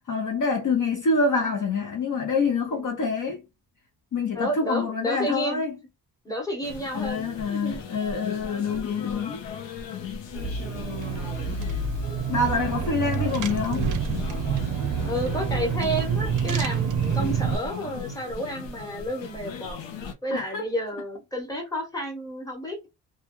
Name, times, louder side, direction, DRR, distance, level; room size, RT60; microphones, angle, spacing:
voice 1, 0.1-3.4 4.1-5.7 6.9-9.4 12.3-13.9 20.3-20.6, left 4 dB, 45° left, 0.7 m, -26 dB
voice 2, 4.3-5.6 6.2-7.8 11.0-11.5 15.0-19.8 20.2-22.9, equal, 10° left, 1.1 m, -31 dB
sound 1, 6.6-20.1, left 5 dB, 85° left, 0.8 m, -37 dB
Car / Engine, 10.4-17.6, right 6 dB, 45° right, 0.5 m, -27 dB
2.4 x 2.2 x 2.9 m
cardioid pair, 105°, 43 cm